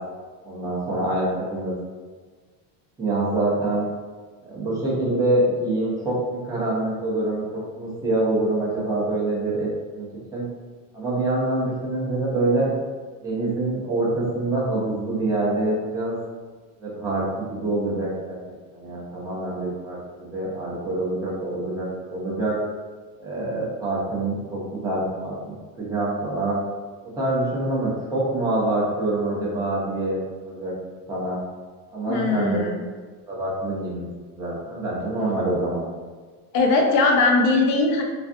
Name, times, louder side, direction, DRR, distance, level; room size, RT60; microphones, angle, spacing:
voice 1, 0.4-1.7 3.0-3.8 4.4-10.1 10.3-10.4 10.9-12.7 13.2-16.1 16.8-18.4 18.7-22.6 23.2-26.6 27.1-30.7 31.1-31.4 31.9-32.6 33.3-34.1 34.4-35.8, right 2 dB, 10° right, -7 dB, 0.5 m, -25 dB
voice 2, 32.1-32.8 36.5-38.0, left 3 dB, 45° left, 1 dB, 0.4 m, -20 dB
2.4 x 2.3 x 2.5 m, 1.5 s
cardioid pair, 145°, 44 cm